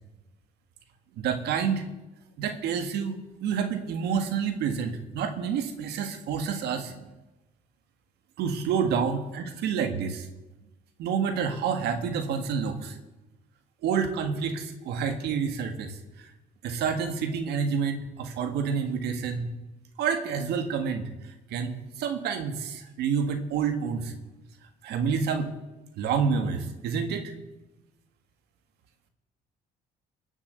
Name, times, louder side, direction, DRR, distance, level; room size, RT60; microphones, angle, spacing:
voice 1, 1.2-1.8 2.4-7.0 8.4-10.3 11.0-13.0 13.8-16.3 16.6-19.5 20.0-21.1 21.5-24.1 24.8-25.5 26.0-27.3, right 6 dB, 80° right, 7 dB, 1.7 m, -28 dB
21.0 x 7.3 x 8.2 m, 1.0 s
cardioid pair, 110°, 17 cm